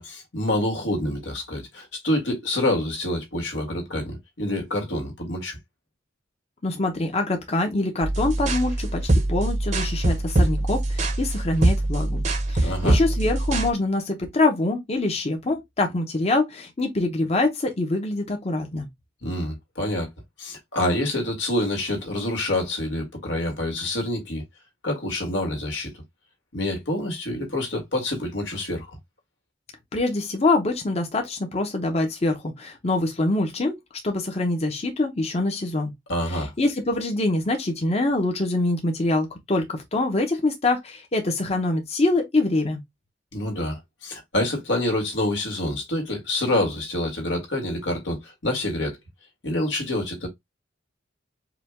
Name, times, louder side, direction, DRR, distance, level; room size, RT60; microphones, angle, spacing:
voice 1, 0.0-5.6 12.5-13.0 19.2-20.1 20.4-24.4 24.8-25.9 26.5-29.0 36.1-36.5 43.3-49.0 49.4-50.3, left 1 dB, 85° left, 1.9 m, -27 dB
voice 2, 6.6-18.9 29.9-33.8 34.0-35.9 36.3-42.8, left 2 dB, 35° left, 0.8 m, -25 dB
sound 1, 8.0-13.7, right 1 dB, 40° right, 0.8 m, -23 dB
4.9 x 2.3 x 3.4 m
head